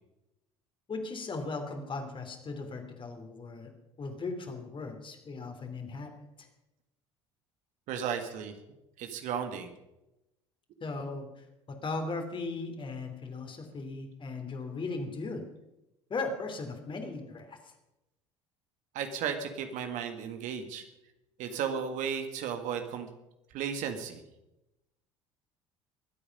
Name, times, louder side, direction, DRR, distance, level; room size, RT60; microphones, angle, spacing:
voice 1, 0.9-3.7 4.0-6.1 10.8-15.5 16.1-17.6, left 3 dB, 35° left, 5 dB, 3.2 m, -37 dB
voice 2, 7.9-8.5 9.0-9.7 18.9-20.9 21.4-23.1 23.5-24.2, right 7 dB, 55° right, 7 dB, 1.8 m, -34 dB
22.5 x 8.7 x 5.4 m, 0.92 s
figure-of-eight pair, 60°, 15 cm